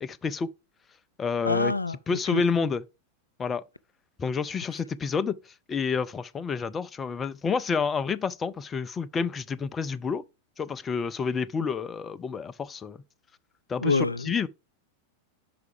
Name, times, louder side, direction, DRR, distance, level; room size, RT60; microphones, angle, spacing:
voice 1, 0.0-0.5 1.2-1.7 2.1-2.8 3.4-3.6 4.2-5.4 5.7-10.2 10.6-13.0 13.7-14.5, left 5 dB, 20° left, 0.4 m, -29 dB
voice 2, 1.4-2.4 13.8-14.5, left 3 dB, 85° left, 0.4 m, -27 dB
5.8 x 4.7 x 4.9 m
figure-of-eight pair, 90°, 0 cm